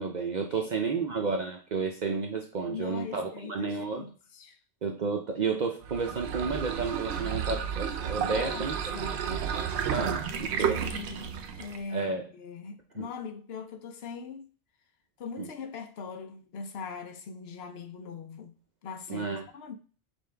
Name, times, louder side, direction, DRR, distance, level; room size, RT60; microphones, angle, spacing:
voice 1, 0.0-4.1 4.8-8.9 9.3-10.9 11.9-12.2 13.0-13.1 15.4-15.5 19.1-19.5, right 4 dB, 50° right, 0.6 m, -32 dB
voice 2, 2.7-4.6 8.3-9.4 10.6-14.5 15.2-18.5 18.8-19.7, left 5 dB, 70° left, 0.9 m, -41 dB
sound 1, 5.8-11.9, right 7 dB, 75° right, 0.8 m, -32 dB
5.4 x 2.6 x 3.3 m
omnidirectional pair, 1.1 m